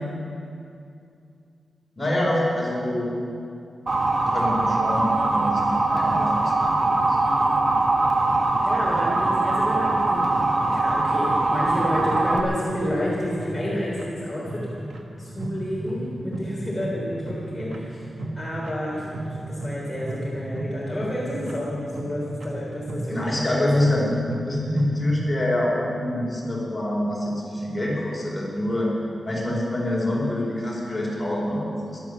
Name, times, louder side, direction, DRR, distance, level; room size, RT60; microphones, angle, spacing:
voice 1, 2.0-3.1 4.3-7.2 23.1-24.1 24.4-28.9 29.2-32.0, left 1 dB, 20° left, -5 dB, 4.6 m, -26 dB
Motor vehicle (road) / Siren, 3.9-12.4, right 2 dB, 40° right, 1.2 m, -22 dB
voice 2, 8.7-10.3 10.7-14.7 15.2-18.0 18.3-23.6, equal, ahead, -7 dB, 3.4 m, -30 dB
sound 1, 11.6-25.2, right 1 dB, 80° right, 1.6 m, -35 dB
16.0 x 11.5 x 7.1 m, 2.5 s
wide cardioid pair, 130°, 0 cm